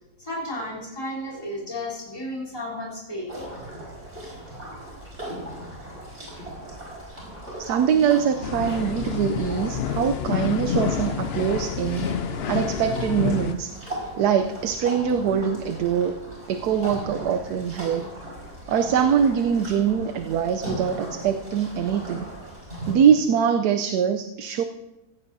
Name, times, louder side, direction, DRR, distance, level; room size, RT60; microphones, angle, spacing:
voice 1, 0.2-3.3, left 1 dB, 20° left, -3 dB, 3.6 m, -33 dB
sound 1, 3.3-22.9, right 1 dB, 45° right, 5.2 m, -38 dB
voice 2, 7.6-12.1 12.5-13.7 14.2-16.2 16.5-18.1 18.7-22.3 22.9-24.6, right 8 dB, 80° right, 7 dB, 1.2 m, -23 dB
sound 2, 8.4-13.5, left 8 dB, 70° left, 0.6 m, -28 dB
16.0 x 16.0 x 2.7 m, 1.0 s
omnidirectional pair, 1.7 m